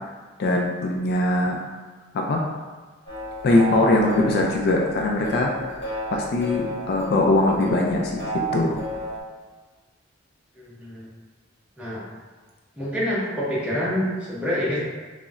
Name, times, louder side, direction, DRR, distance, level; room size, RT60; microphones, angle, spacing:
voice 1, 0.4-1.6 2.1-2.4 3.4-5.8 6.1-8.8, left 2 dB, 55° left, 0 dB, 0.3 m, -21 dB
sound 1, 3.1-9.2, equal, 30° left, 1.2 m, -32 dB
voice 2, 10.6-11.1 11.8-12.0 12.8-14.8, equal, 5° right, -8 dB, 0.7 m, -27 dB
3.9 x 2.0 x 2.3 m, 1.4 s
head